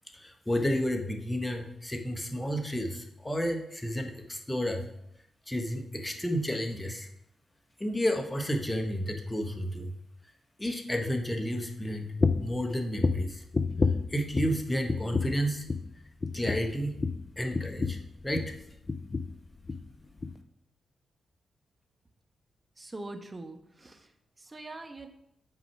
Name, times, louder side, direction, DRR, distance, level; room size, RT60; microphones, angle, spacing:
voice 1, 0.1-4.9 5.5-7.1 7.8-9.9 10.6-12.1 12.4-13.4 14.1-15.7 16.3-17.0 17.4-18.0 18.2-18.5, equal, 15° left, 4 dB, 1.6 m, -31 dB
sound 1, 12.2-12.6 13.0-14.6 14.9-15.4 15.7-15.9 16.2-18.6 18.9-19.4 19.7-19.9 20.2-20.3, left 4 dB, 45° left, 0.5 m, -29 dB
voice 2, 22.8-24.1 24.4-25.1, right 2 dB, 30° right, 5 dB, 1.3 m, -43 dB
9.1 x 4.9 x 4.7 m, 0.77 s
supercardioid pair, 40°, 0 cm